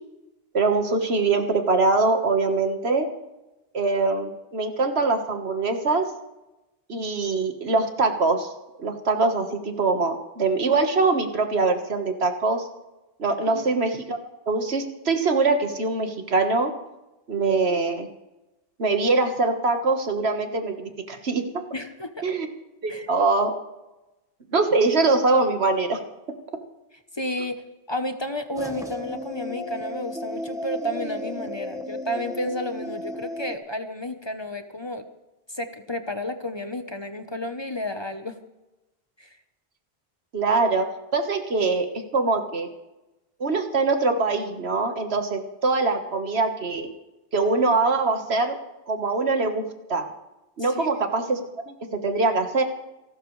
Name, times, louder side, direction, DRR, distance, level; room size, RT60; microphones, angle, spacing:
voice 1, 0.5-3.1 3.7-6.1 6.9-8.5 8.8-12.7 13.2-14.2 14.5-16.7 17.3-18.1 18.8-21.4 22.2-22.5 22.8-23.5 24.5-26.0 40.3-40.9 41.1-41.9 42.1-42.7 43.4-46.9 47.3-48.6 48.9-49.6 49.9-50.1 50.6-51.4 51.7-51.8 52.0-52.6, right 3 dB, 80° right, 5 dB, 1.8 m, -23 dB
voice 2, 21.7-22.2 22.9-23.1 27.1-27.6 27.9-35.0 35.5-38.4 39.2-39.3 50.6-50.9, left 1 dB, 25° left, 7 dB, 1.0 m, -31 dB
sound 1, 28.6-33.6, left 1 dB, 5° right, 1.1 m, -34 dB
28.0 x 12.5 x 3.3 m, 1.0 s
omnidirectional pair, 1.1 m